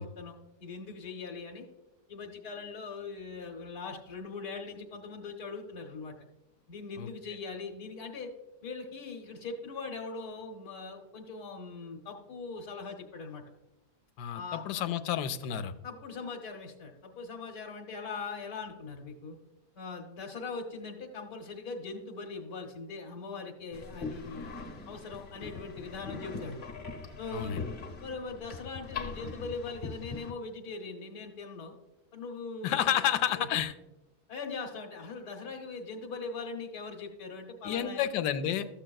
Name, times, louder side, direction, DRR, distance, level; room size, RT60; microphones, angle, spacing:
voice 1, 0.0-1.7 2.1-6.1 6.7-8.3 8.6-13.4 14.3-14.9 15.8-19.4 19.8-24.5 24.9-26.6 27.2-27.6 28.0-31.7 32.1-33.1 33.4-33.5 34.3-38.1, left 4 dB, 65° left, 2 dB, 1.3 m, -41 dB
voice 2, 14.2-15.7 27.3-27.6 32.6-33.7 37.6-38.7, left 10 dB, 85° left, 11 dB, 1.2 m, -30 dB
sound 1, 23.7-30.3, left 4 dB, 45° left, 1.1 m, -41 dB
13.5 x 7.5 x 2.3 m, 0.97 s
omnidirectional pair, 1.7 m